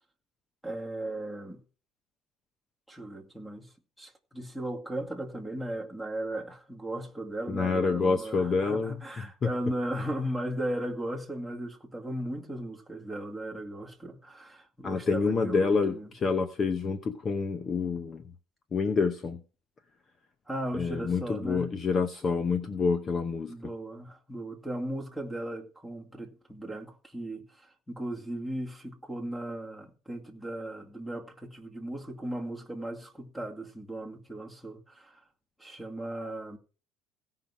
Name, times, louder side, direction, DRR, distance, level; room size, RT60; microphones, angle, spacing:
voice 1, 0.6-1.6 2.9-16.1 20.5-21.7 23.5-35.2 35.6-36.6, right 1 dB, ahead, 2.3 m, -37 dB
voice 2, 7.5-8.9 9.4-9.5 14.8-18.2 18.7-19.4 20.7-23.5, left 4 dB, 30° left, 0.8 m, -27 dB
17.0 x 5.7 x 4.8 m
cardioid pair, 145°, 0 cm